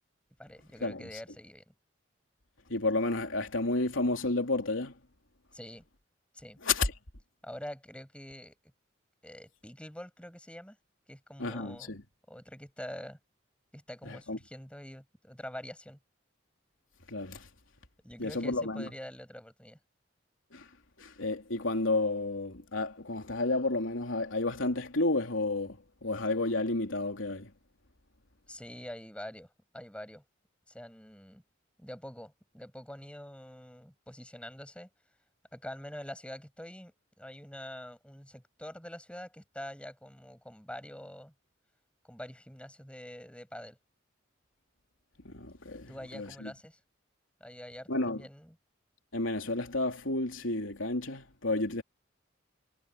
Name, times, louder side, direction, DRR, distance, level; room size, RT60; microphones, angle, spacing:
voice 1, 0.4-1.7 5.5-5.9 6.3-6.6 7.4-8.6 9.2-10.8 11.1-12.0 12.3-13.2 13.7-16.0 18.0-19.8 28.5-30.2 30.7-31.4 31.8-34.9 35.5-41.3 42.0-43.8 45.9-46.8 47.4-48.6, equal, 5° left, 7.2 m, -45 dB
voice 2, 2.7-4.9 6.6-6.9 11.4-12.0 14.0-14.4 17.1-17.5 18.2-18.9 20.5-20.7 21.0-27.5 45.2-46.5 47.9-48.2 49.1-51.8, left 2 dB, 85° left, 3.2 m, -31 dB
head